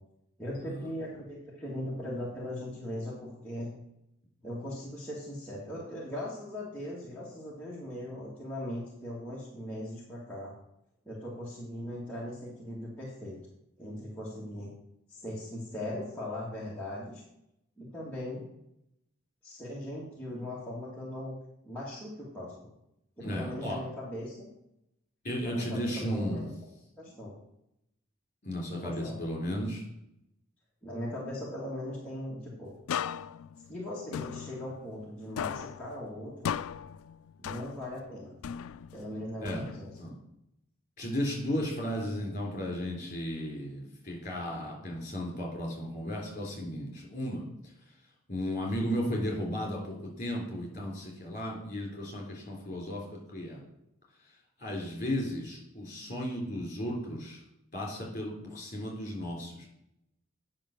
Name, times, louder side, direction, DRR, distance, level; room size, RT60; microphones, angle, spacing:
voice 1, 0.4-3.7 4.4-10.5 11.1-13.4 13.8-14.7 15.1-17.2 17.8-18.4 19.4-21.3 21.6-22.7 23.2-24.5 25.4-26.5 27.0-27.3 28.8-29.1 30.8-32.7 33.7-36.5 37.4-38.4 38.9-39.9, left 1 dB, 5° left, -7 dB, 1.7 m, -39 dB
voice 2, 23.2-23.8 25.2-26.5 28.4-29.8 39.4-39.7 40.0-40.2 41.0-47.4 48.3-53.6 54.6-57.4 57.7-59.7, equal, 35° left, -1 dB, 3.7 m, -34 dB
sound 1, 32.9-35.1 35.4-38.0 38.4-40.1, left 8 dB, 85° left, 0.3 m, -38 dB
9.0 x 5.8 x 6.5 m, 0.82 s
head